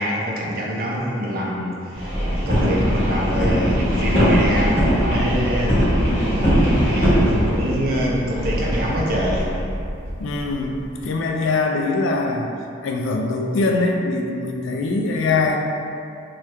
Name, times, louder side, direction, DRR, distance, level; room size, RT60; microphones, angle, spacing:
voice 1, 0.0-5.9 6.7-9.5, equal, 45° right, -4 dB, 0.5 m, -25 dB
sound 1, 1.9-11.1, equal, 30° left, 1.2 m, -20 dB
voice 2, 10.2-12.5 12.8-15.6, left 3 dB, 75° left, 2 dB, 0.3 m, -22 dB
2.9 x 2.3 x 3.2 m, 2.5 s
head